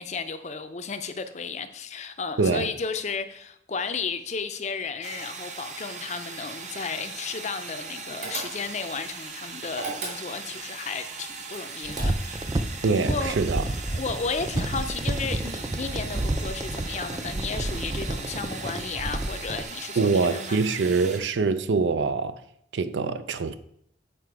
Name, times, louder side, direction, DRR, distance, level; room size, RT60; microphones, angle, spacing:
voice 1, 0.0-12.5 13.0-13.4 13.8-20.6, left 5 dB, 40° left, 0.5 m, -33 dB
sound 1, 5.0-21.2, right 4 dB, 40° right, 0.8 m, -39 dB
sound 2, 8.2-8.9 9.7-10.6 11.5-12.5, right 3 dB, 60° right, 2.6 m, -36 dB
sound 3, 11.8-19.6, right 1 dB, 20° right, 0.4 m, -30 dB
voice 2, 12.8-13.6 20.0-22.4 22.7-23.5, right 4 dB, 85° right, 0.5 m, -24 dB
7.7 x 4.8 x 4.7 m
head